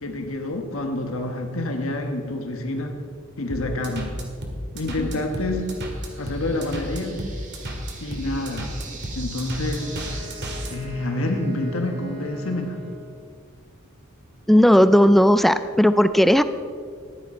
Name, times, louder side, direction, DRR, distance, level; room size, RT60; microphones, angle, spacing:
voice 1, 0.0-3.0 3.4-4.2 4.7-5.7 6.2-7.2 8.0-8.8 9.1-10.3 10.7-12.8, left 1 dB, 75° left, 4 dB, 1.3 m, -28 dB
sound 1, 3.5-10.7, equal, 55° right, 2.0 m, -32 dB
sound 2, 5.0-10.9, right 4 dB, 40° right, 1.8 m, -43 dB
Wind instrument woodwind instrument, 9.7-13.4, left 1 dB, 80° right, 3.2 m, -42 dB
voice 2, 14.5-16.4, equal, ahead, 12 dB, 0.3 m, -15 dB
14.5 x 10.0 x 4.3 m, 2.1 s
head